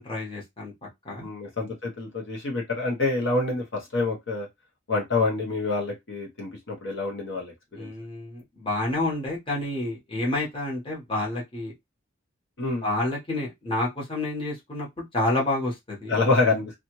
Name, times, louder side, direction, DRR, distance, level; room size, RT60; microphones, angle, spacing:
voice 1, 0.0-1.3 7.7-11.7 12.8-16.2, left 2 dB, 25° left, 1.1 m, -29 dB
voice 2, 1.2-4.5 4.9-7.9 12.6-12.8 16.1-16.7, left 3 dB, 55° left, 0.9 m, -27 dB
2.7 x 2.4 x 2.9 m
head